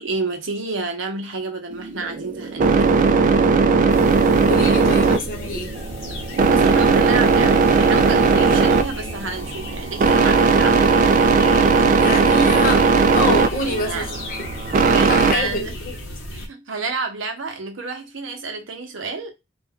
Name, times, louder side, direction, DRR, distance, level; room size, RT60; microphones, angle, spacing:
voice 1, 0.0-3.0 6.5-10.9 13.6-14.2 14.9-15.7 16.3-19.3, right 3 dB, 70° right, 0.7 m, -29 dB
sound 1, 1.7-15.3, right 4 dB, 40° right, 0.3 m, -17 dB
sound 2, 3.9-16.5, equal, 70° left, 0.9 m, -34 dB
voice 2, 4.5-5.7 12.0-14.4 14.9-15.9, left 1 dB, 45° left, 0.9 m, -26 dB
2.4 x 2.2 x 3.5 m
head